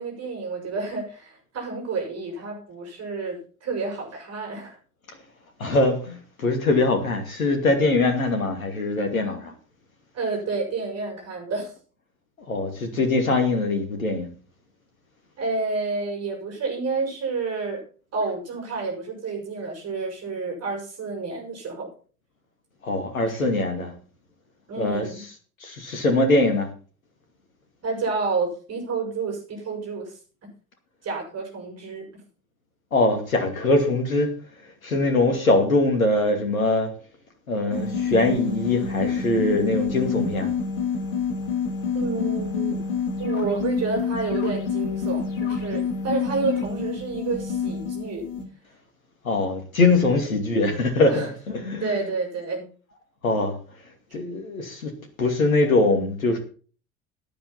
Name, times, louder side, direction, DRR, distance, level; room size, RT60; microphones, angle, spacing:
voice 1, 0.0-4.8 10.1-11.7 15.4-17.8 18.1-21.9 23.2-23.4 24.7-25.2 27.8-30.1 31.0-32.1 41.9-42.8 43.2-48.3 51.1-51.3 51.8-52.7, right 4 dB, 35° right, 6.6 m, -29 dB
voice 2, 5.6-9.5 12.5-14.3 22.8-23.9 24.8-25.1 25.6-26.7 32.9-34.3 34.8-36.9 37.5-40.5 49.2-51.9 53.2-53.6 54.1-54.9 55.2-56.4, left 2 dB, 80° left, 2.5 m, -22 dB
sound 1, 37.7-48.5, left 6 dB, 65° left, 2.8 m, -28 dB
13.5 x 10.5 x 4.2 m
figure-of-eight pair, 65°, 41 cm